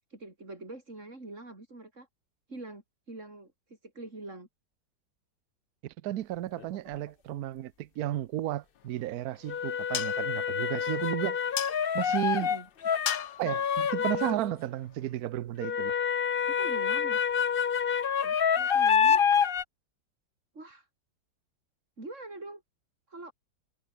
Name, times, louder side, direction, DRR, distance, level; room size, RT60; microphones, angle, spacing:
voice 1, 0.1-2.1 2.5-4.5 6.7-6.9 12.4-13.0 16.3-17.3 17.9-19.3 20.5-20.9 22.0-22.6 23.1-23.3, right 2 dB, 40° right, 5.3 m, -44 dB
voice 2, 5.8-11.4 11.9-12.5 13.4-15.9, right 13 dB, 65° right, 1.1 m, -33 dB
sound 1, 6.6-6.7 9.5-14.5 15.6-19.6, left 7 dB, 45° left, 0.7 m, -27 dB
sound 2, 8.8-15.2, left 11 dB, 65° left, 1.4 m, -41 dB
omnidirectional pair, 2.0 m